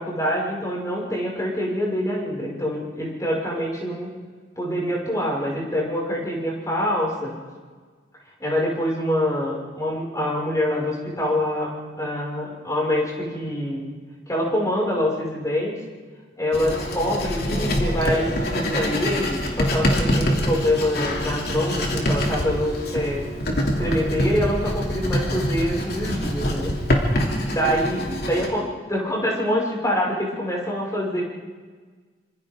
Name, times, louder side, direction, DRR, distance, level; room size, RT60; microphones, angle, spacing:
voice 1, 0.0-4.1 4.6-7.3 8.4-13.8 14.3-15.7 16.4-23.3 23.8-26.7 27.5-31.2, equal, 20° left, -4 dB, 6.1 m, -25 dB
Writing, 16.5-28.5, equal, 60° left, 3.2 m, -25 dB
27.0 x 26.0 x 3.8 m, 1.5 s
head